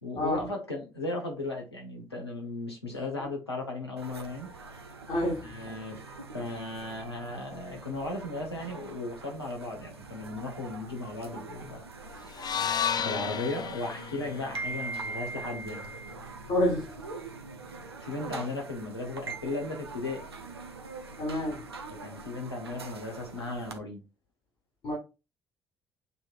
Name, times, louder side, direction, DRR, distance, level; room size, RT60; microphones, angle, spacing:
voice 1, 0.0-4.5 5.4-11.9 13.0-15.9 18.0-20.2 22.0-24.0, left 2 dB, 85° left, 1.1 m, -36 dB
sound 1, 4.0-23.8, right 3 dB, 85° right, 0.5 m, -43 dB
voice 2, 5.1-5.5 16.5-16.9 21.2-21.7 24.8-24.9, left 1 dB, 50° left, 2.0 m, -28 dB
sound 2, 12.3-16.5, left 8 dB, 30° left, 0.4 m, -34 dB
6.7 x 3.1 x 2.4 m
figure-of-eight pair, 50°, 13 cm